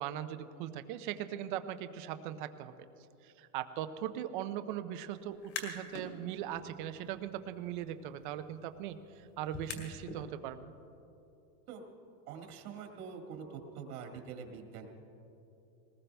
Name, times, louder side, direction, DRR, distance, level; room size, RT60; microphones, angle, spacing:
voice 1, 0.0-2.7 3.2-10.7, right 11 dB, 35° right, 11 dB, 0.5 m, -40 dB
sound 1, 5.3-6.1 6.5-10.2, left 5 dB, 40° left, 2.4 m, -47 dB
voice 2, 12.3-14.9, right 6 dB, 70° right, 3 dB, 2.0 m, -45 dB
21.0 x 19.5 x 3.4 m, 2.9 s
supercardioid pair, 170°, 47 cm